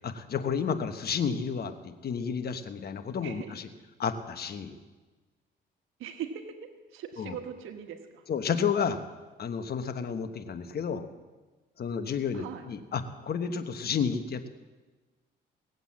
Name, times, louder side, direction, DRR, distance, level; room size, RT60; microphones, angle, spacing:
voice 1, 0.0-3.7 4.0-4.7 7.2-7.4 8.3-9.0 9.4-11.1 11.8-14.5, left 6 dB, 55° left, 9 dB, 1.2 m, -31 dB
voice 2, 3.2-3.5 6.0-6.6 6.9-8.2 12.3-12.6, right 8 dB, 85° right, 6 dB, 1.3 m, -40 dB
18.5 x 8.1 x 7.5 m, 1.3 s
cardioid pair, 90°, 20 cm